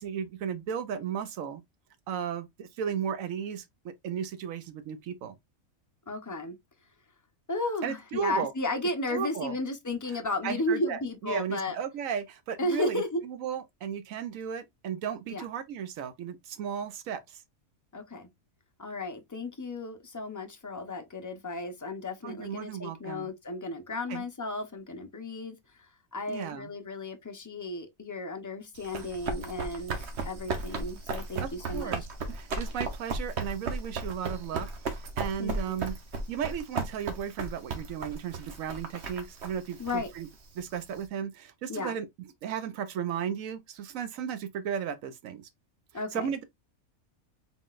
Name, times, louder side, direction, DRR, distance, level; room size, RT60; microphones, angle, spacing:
voice 1, 0.0-1.6 2.1-5.4 7.8-8.5 9.1-9.6 10.1-17.4 22.2-23.3 24.1-24.2 26.3-26.7 31.4-32.0 32.3-36.0 36.3-40.3 40.6-42.1 42.4-45.5 46.1-46.4, right 8 dB, 75° right, 1.0 m, -35 dB
voice 2, 6.1-6.6 7.5-11.8 12.6-13.2 15.3-15.5 17.9-18.3 18.8-25.6 26.1-31.9 35.4-35.9 39.8-40.1 41.7-42.0 45.9-46.3, left 2 dB, 20° left, 0.4 m, -34 dB
Run, 28.8-41.0, right 3 dB, 55° right, 1.2 m, -35 dB
4.0 x 3.7 x 2.4 m
omnidirectional pair, 1.4 m